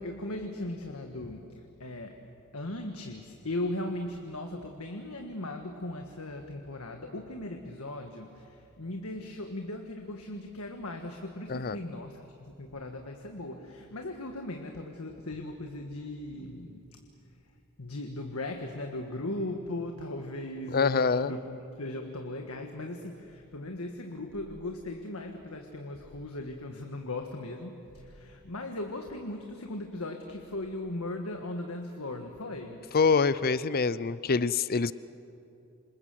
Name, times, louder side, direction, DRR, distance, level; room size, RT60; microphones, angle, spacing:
voice 1, 0.0-1.5 1.8-2.2 2.5-16.8 17.8-32.8, left 1 dB, 75° left, 4 dB, 1.7 m, -38 dB
voice 2, 20.7-21.3 32.9-34.9, left 5 dB, 45° left, 16 dB, 0.6 m, -25 dB
27.0 x 27.0 x 7.7 m, 2.8 s
head